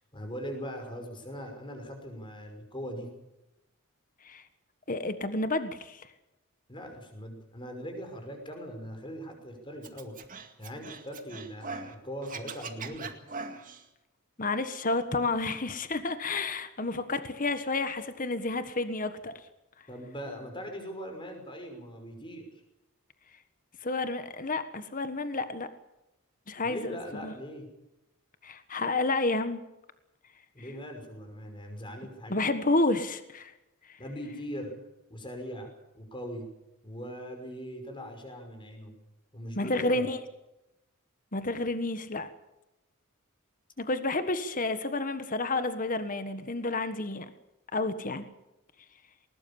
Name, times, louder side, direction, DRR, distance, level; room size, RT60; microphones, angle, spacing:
voice 1, 0.1-3.1 6.7-10.2 10.6-13.1 19.9-22.5 26.6-27.7 30.5-32.5 34.0-34.7 35.1-35.7 35.9-36.5 36.8-38.9 39.3-40.1, equal, 20° left, 4 dB, 5.8 m, -40 dB
voice 2, 4.9-6.1 14.4-19.3 23.8-25.7 26.5-27.3 28.4-29.6 32.3-33.5 39.6-40.2 41.3-42.3 43.8-47.2 47.7-48.2, left 2 dB, 40° left, 10 dB, 1.5 m, -30 dB
Scratching (performance technique), 9.8-11.9 12.2-13.8, right 4 dB, 40° right, 2.2 m, -41 dB
20.5 x 20.5 x 7.2 m, 0.92 s
head